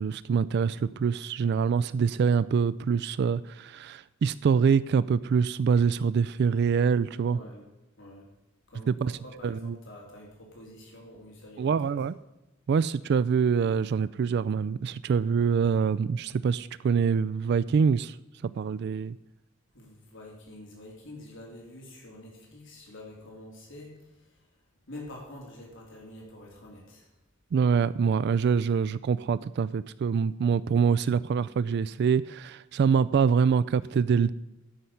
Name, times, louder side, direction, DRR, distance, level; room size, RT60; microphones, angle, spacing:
voice 1, 0.0-7.4 8.9-9.1 9.4-9.8 11.6-12.1 12.7-18.2 18.4-19.1 27.5-34.3, right 6 dB, 55° right, 18 dB, 0.3 m, -25 dB
voice 2, 7.1-7.7 8.0-8.3 8.7-11.9 19.7-27.1 33.8-33.9, left 1 dB, 65° left, -2 dB, 2.9 m, -47 dB
12.5 x 5.6 x 7.9 m, 1.0 s
head